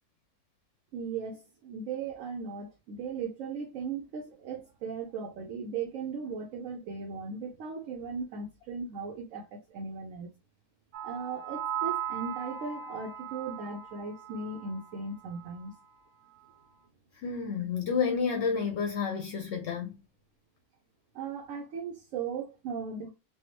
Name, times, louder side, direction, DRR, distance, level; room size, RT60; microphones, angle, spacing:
voice 1, 0.9-10.3 11.0-15.8 21.1-23.1, right 5 dB, 70° right, 0.9 m, -37 dB
sound 1, 10.9-15.0 15.3-15.6, right 9 dB, 85° right, 1.1 m, -38 dB
voice 2, 17.1-20.0, left 6 dB, 60° left, 0.8 m, -30 dB
3.4 x 2.3 x 2.8 m
omnidirectional pair, 1.5 m